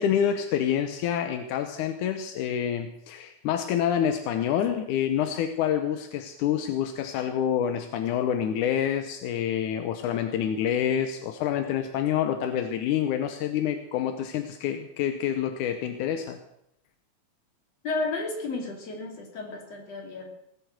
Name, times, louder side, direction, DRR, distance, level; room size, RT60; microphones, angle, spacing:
voice 1, 0.0-16.4, left 9 dB, 85° left, 7 dB, 2.3 m, -27 dB
voice 2, 17.8-20.3, left 3 dB, 55° left, 1 dB, 4.0 m, -32 dB
18.0 x 8.1 x 7.8 m, 0.80 s
omnidirectional pair, 3.5 m